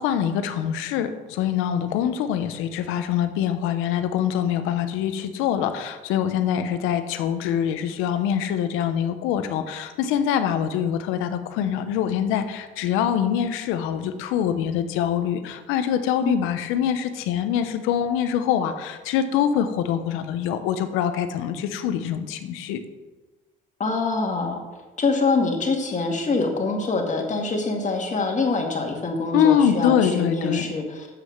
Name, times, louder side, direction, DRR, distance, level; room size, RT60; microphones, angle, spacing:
voice 1, 0.0-22.8 29.3-30.6, left 9 dB, 90° left, 9 dB, 0.8 m, -24 dB
voice 2, 23.8-24.6 25.0-31.1, left 3 dB, 35° left, 2 dB, 2.0 m, -24 dB
7.7 x 6.5 x 6.4 m, 1.2 s
cardioid pair, 90°, 20 cm